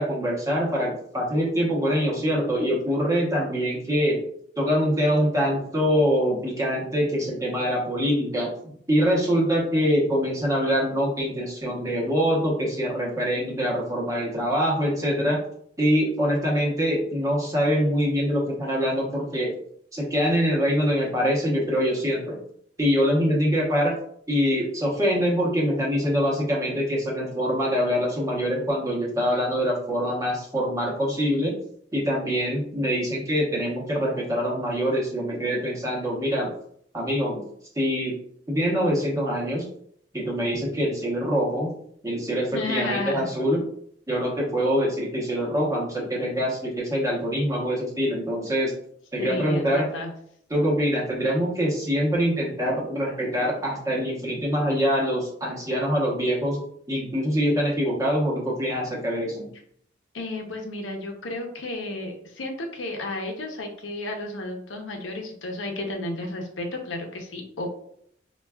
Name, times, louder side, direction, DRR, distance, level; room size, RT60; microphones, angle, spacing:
voice 1, 0.0-4.2 4.6-15.4 15.8-19.5 19.9-22.4 22.8-23.9 24.3-31.5 31.9-36.5 36.9-37.4 37.8-38.2 38.5-39.7 40.1-41.7 42.0-43.6 44.1-48.7 49.1-49.9 50.5-56.6 56.9-59.5, equal, 15° right, -4 dB, 0.8 m, -24 dB
voice 2, 42.5-43.3 49.2-50.1 60.1-67.7, left 2 dB, 80° left, 2 dB, 0.7 m, -32 dB
4.4 x 2.3 x 2.2 m, 0.67 s
head